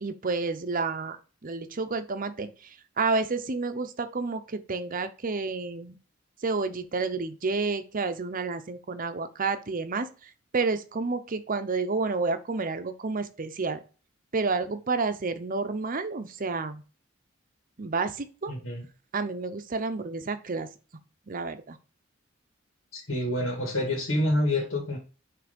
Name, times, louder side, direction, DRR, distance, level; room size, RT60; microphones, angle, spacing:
voice 1, 0.0-6.0 6.4-13.8 14.3-16.8 17.8-18.5 19.1-20.7 21.3-21.8, right 4 dB, 45° right, 0.7 m, -30 dB
voice 2, 18.5-18.8 22.9-25.0, left 1 dB, 85° left, 2.0 m, -27 dB
6.1 x 3.4 x 5.2 m
head